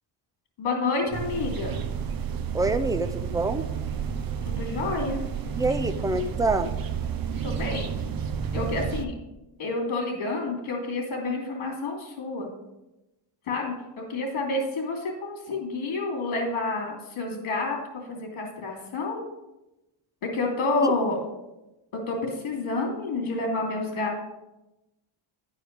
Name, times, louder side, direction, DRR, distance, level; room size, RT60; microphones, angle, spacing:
voice 1, 0.6-1.8 4.4-5.2 6.1-6.2 7.4-8.0 8.5-9.1 9.6-12.5 13.5-19.2 20.2-21.2 21.9-24.2, left 3 dB, 90° left, 1 dB, 2.8 m, -29 dB
sound 1, 1.1-9.0, right 7 dB, 45° right, 0.7 m, -31 dB
voice 2, 2.5-3.6 5.5-6.7 20.8-20.9, right 2 dB, 10° right, 9 dB, 0.3 m, -26 dB
11.0 x 4.9 x 5.1 m, 0.98 s
cardioid pair, 140°, 48 cm